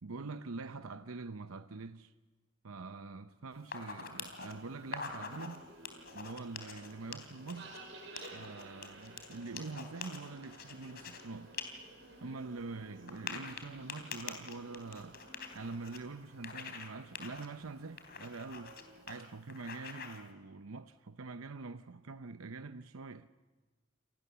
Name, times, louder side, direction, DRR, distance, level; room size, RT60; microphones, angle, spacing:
voice 1, 0.0-2.1 2.6-5.7 6.1-7.8 8.3-11.5 12.2-15.2 15.5-18.8 19.1-23.3, right 3 dB, 85° right, 0.8 m, -45 dB
sound 1, 3.6-4.5 4.8-5.6 5.9-7.8 8.2-11.2 11.5-11.6 12.0-12.1 13.1-16.0 16.4-16.9 17.2-17.5 18.0-18.8 19.1-19.2 19.5-20.2, left 5 dB, 50° left, 3.5 m, -45 dB
sound 2, 4.1-19.0, right 2 dB, 65° right, 6.2 m, -55 dB
29.5 x 27.0 x 7.0 m
head